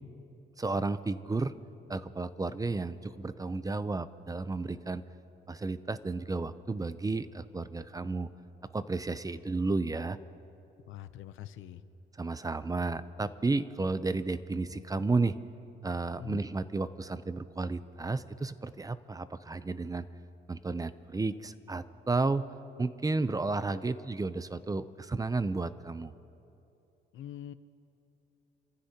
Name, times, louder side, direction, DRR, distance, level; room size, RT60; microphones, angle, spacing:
voice 1, 0.6-1.5 1.9-5.0 5.5-8.3 8.7-10.2 12.2-15.4 15.8-20.1 20.5-22.5 22.8-26.1, right 3 dB, 20° right, 14 dB, 0.5 m, -32 dB
voice 2, 10.8-11.8 16.2-16.4 27.1-27.5, left 11 dB, 80° left, 13 dB, 0.7 m, -43 dB
28.5 x 15.0 x 2.9 m, 2.8 s
cardioid pair, 90°, 20 cm